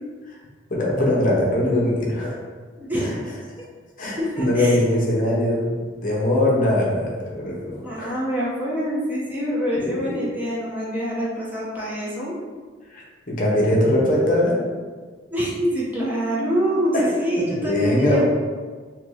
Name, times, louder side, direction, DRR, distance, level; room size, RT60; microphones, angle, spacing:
voice 1, 0.7-2.4 2.9-3.1 4.0-8.1 9.8-10.3 12.9-14.6 16.9-17.0 17.4-18.2, left 1 dB, 45° left, -4 dB, 0.7 m, -22 dB
voice 2, 2.8-3.1 4.2-4.8 7.8-12.4 15.3-18.2, equal, 10° right, -7 dB, 0.6 m, -25 dB
2.8 x 2.7 x 3.8 m, 1.5 s
head